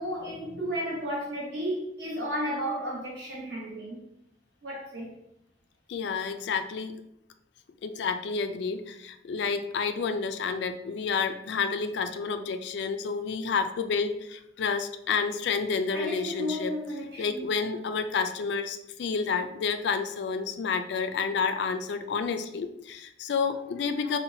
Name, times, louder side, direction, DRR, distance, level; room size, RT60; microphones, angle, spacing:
voice 1, 0.0-4.0 4.6-5.1 15.9-17.5, equal, 65° right, -5 dB, 1.2 m, -33 dB
voice 2, 5.9-7.0 7.8-16.7 17.2-24.2, left 5 dB, 70° left, 8 dB, 0.3 m, -30 dB
5.6 x 2.2 x 2.6 m, 0.82 s
head